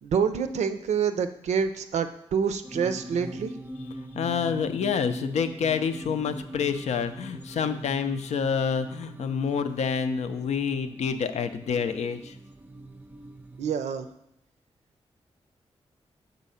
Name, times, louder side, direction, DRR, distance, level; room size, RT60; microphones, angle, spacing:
voice 1, 0.0-3.5 13.6-14.1, right 6 dB, 85° right, 9 dB, 0.5 m, -27 dB
sound 1, 2.6-13.8, right 1 dB, 15° right, 0.4 m, -41 dB
voice 2, 4.1-12.3, left 6 dB, 75° left, 9 dB, 0.5 m, -28 dB
6.2 x 4.0 x 5.5 m, 0.80 s
cardioid pair, 55°, 11 cm